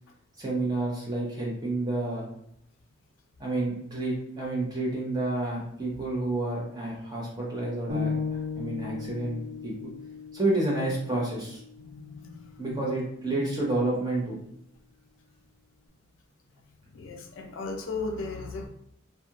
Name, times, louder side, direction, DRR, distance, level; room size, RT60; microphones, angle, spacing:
voice 1, 0.4-2.3 3.4-9.7 10.3-11.6 12.6-14.4, right 2 dB, 20° right, -4 dB, 0.7 m, -30 dB
sound 1, 7.9-12.0, left 5 dB, 80° right, 0.9 m, -35 dB
voice 2, 11.8-12.8 13.3-13.4 16.9-18.7, left 3 dB, 80° left, 2 dB, 0.5 m, -37 dB
2.5 x 2.2 x 2.8 m, 0.73 s
head